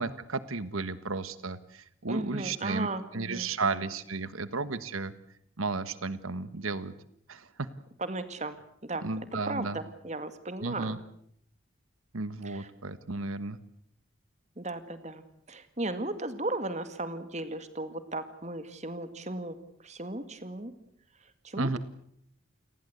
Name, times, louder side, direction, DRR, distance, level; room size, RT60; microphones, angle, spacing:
voice 1, 0.0-2.9 3.1-5.1 5.6-6.9 7.3-7.7 9.0-9.8 10.6-11.0 12.1-13.6 21.5-21.8, right 3 dB, 90° right, 14 dB, 1.4 m, -33 dB
voice 2, 2.1-3.9 8.0-8.6 8.8-9.0 9.3-11.0 12.4-12.7 14.6-20.7 21.4-21.8, right 2 dB, 35° right, 11 dB, 2.1 m, -36 dB
29.0 x 19.5 x 8.0 m, 0.71 s
head